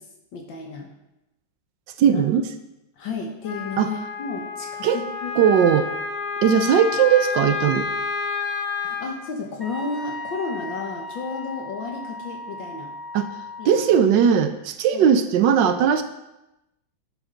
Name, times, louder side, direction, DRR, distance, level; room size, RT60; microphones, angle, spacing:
voice 1, 0.3-0.9 2.0-2.2 3.0-5.3 8.8-12.9 13.6-14.1 14.9-15.1, left 4 dB, 70° left, 1 dB, 1.8 m, -32 dB
voice 2, 2.0-2.5 3.8-3.9 4.8-5.0 5.4-5.9 6.4-7.9 13.1-13.3 13.6-16.0, right 8 dB, 70° right, 9 dB, 1.2 m, -18 dB
Wind instrument woodwind instrument, 3.4-9.1, left 4 dB, 50° left, 1.1 m, -29 dB
Wind instrument woodwind instrument 2, 9.6-14.0, left 2 dB, ahead, 1.4 m, -37 dB
11.0 x 7.4 x 3.8 m, 0.93 s
omnidirectional pair, 2.2 m